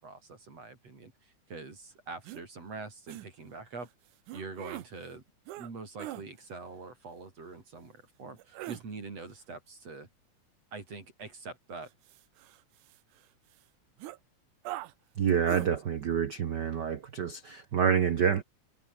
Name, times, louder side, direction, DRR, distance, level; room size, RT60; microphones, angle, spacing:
voice 1, 0.0-3.9 4.3-5.2 5.6-10.1 10.7-11.9, right 3 dB, 55° right, 5.8 m, -44 dB
sound 1, 2.2-2.4 3.1-3.3 4.3-4.9 5.5-5.7 6.0-6.2 8.4-8.8 11.8-13.2 13.5-13.6 14.0-14.2 14.6-14.9 15.5-15.7, right 16 dB, 90° right, 2.4 m, -41 dB
voice 2, 15.2-18.4, right 7 dB, 70° right, 1.0 m, -27 dB
omnidirectional pair, 3.5 m